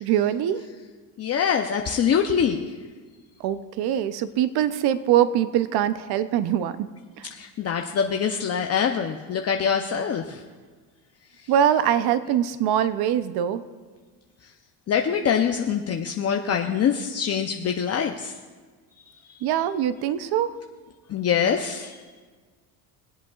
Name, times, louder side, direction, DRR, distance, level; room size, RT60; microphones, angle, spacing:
voice 1, 0.0-0.6 3.4-6.9 7.2-7.3 11.5-13.6 19.4-20.6, right 10 dB, 60° right, 13 dB, 0.7 m, -23 dB
voice 2, 1.2-2.7 7.3-10.4 14.9-18.3 19.3-19.4 21.1-22.0, left 7 dB, 35° left, 3 dB, 0.7 m, -24 dB
24.0 x 8.1 x 2.4 m, 1.5 s
cardioid pair, 115°, 44 cm